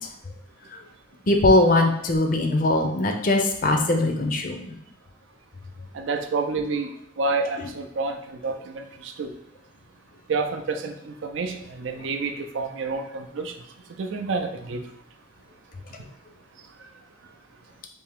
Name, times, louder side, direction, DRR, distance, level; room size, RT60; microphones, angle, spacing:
voice 1, 1.3-4.7, left 2 dB, 45° left, 3 dB, 0.5 m, -20 dB
voice 2, 5.9-9.3 10.3-13.5 14.0-14.8, right 3 dB, 75° right, 5 dB, 0.4 m, -29 dB
3.4 x 2.8 x 3.4 m, 0.78 s
head